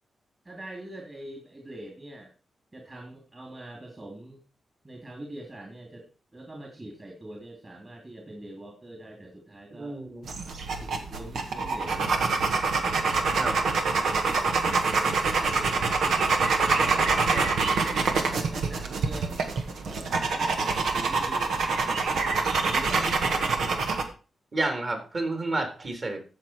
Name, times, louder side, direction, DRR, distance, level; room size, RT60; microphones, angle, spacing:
voice 1, 0.4-2.3 2.7-4.4 4.8-6.0 6.3-10.0 10.8-12.2 14.0-14.5 15.3-16.4 16.8-19.5 19.8-23.8, right 1 dB, 30° right, 1 dB, 3.0 m, -43 dB
voice 2, 9.8-10.3 13.3-13.6 16.7-16.8 17.3-17.5 24.5-26.2, right 2 dB, 45° right, 4 dB, 3.8 m, -30 dB
sound 1, 10.3-24.0, right 4 dB, 85° right, 1.6 m, -26 dB
15.0 x 5.6 x 4.5 m, 0.36 s
cardioid pair, 80°, 0 cm